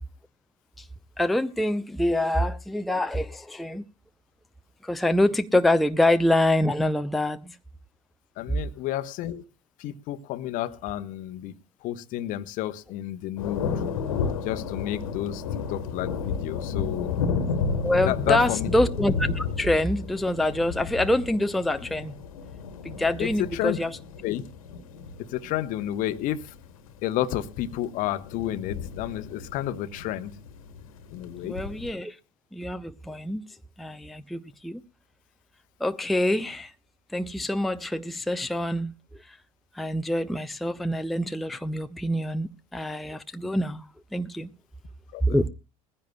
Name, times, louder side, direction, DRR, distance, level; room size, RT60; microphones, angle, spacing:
voice 1, 1.2-3.8 4.8-7.6 17.8-22.1 22.8-24.0 31.4-32.2 32.5-33.4 33.8-34.8 35.8-36.7 37.1-38.9 39.2-39.4 39.7-43.8 44.1-44.5 45.2-45.5, left 1 dB, ahead, 0.6 m, -25 dB
voice 2, 8.4-9.4 9.8-11.5 11.8-13.8 14.4-15.4 15.7-17.1 18.1-18.7 23.2-23.8 24.2-24.4 25.2-26.5 27.0-30.3 31.1-31.6 45.1-45.4, left 13 dB, 45° left, 1.0 m, -31 dB
sound 1, 13.4-31.9, left 5 dB, 65° left, 1.5 m, -33 dB
21.0 x 15.5 x 2.2 m
figure-of-eight pair, 75°, 19 cm